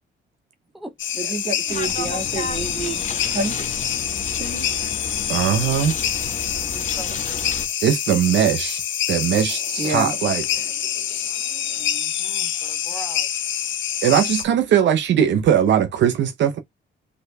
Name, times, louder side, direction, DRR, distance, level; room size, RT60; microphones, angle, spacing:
sound 1, 1.0-14.4, left 10 dB, 70° left, 1.0 m, -26 dB
voice 1, 1.2-3.5 4.3-4.7 9.8-10.2 10.9-11.9, right 2 dB, 35° right, 2.2 m, -29 dB
sound 2, 1.7-7.7, left 4 dB, 40° left, 1.2 m, -32 dB
voice 2, 5.3-6.0 7.8-8.8 9.1-10.4 14.0-16.6, right 9 dB, 70° right, 0.7 m, -19 dB
voice 3, 6.3-7.5 11.8-13.3, right 2 dB, ahead, 0.9 m, -41 dB
5.3 x 4.2 x 2.3 m
cardioid pair, 90°, 20 cm